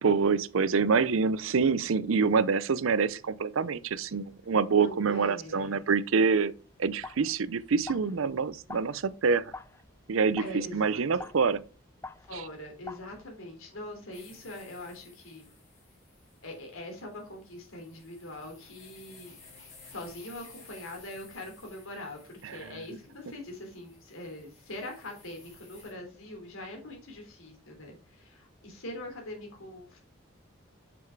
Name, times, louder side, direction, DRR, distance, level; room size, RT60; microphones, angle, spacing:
voice 1, 0.0-6.5 6.8-9.5 10.1-11.6 12.3-12.4 22.4-22.8, right 5 dB, 75° right, 0.5 m, -26 dB
voice 2, 4.8-5.9 10.4-11.3 12.3-15.5 16.4-19.4 19.9-30.0, left 1 dB, 80° left, 3.6 m, -43 dB
sound 1, 6.6-13.6, left 3 dB, 10° left, 0.4 m, -47 dB
sound 2, 14.1-25.9, left 4 dB, 30° left, 4.0 m, -56 dB
7.0 x 6.4 x 4.6 m
head